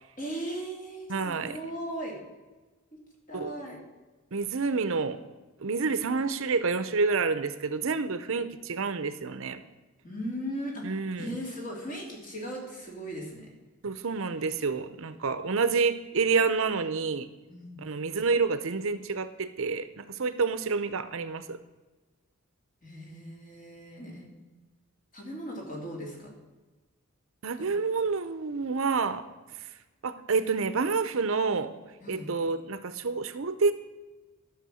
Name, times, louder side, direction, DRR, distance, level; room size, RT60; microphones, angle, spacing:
voice 1, 0.2-2.2 3.3-3.8 10.0-13.5 17.5-17.8 22.8-24.3 25.1-26.3 27.6-27.7 32.0-32.3, equal, 40° left, -1 dB, 3.1 m, -38 dB
voice 2, 1.1-1.6 3.3-3.5 4.3-5.2 5.6-9.6 10.8-11.4 13.8-17.3 17.8-21.6 27.4-29.2 29.6-29.7 30.0-31.7 32.1-33.7, right 4 dB, 65° right, 12 dB, 0.7 m, -28 dB
12.5 x 6.2 x 6.3 m, 1.2 s
head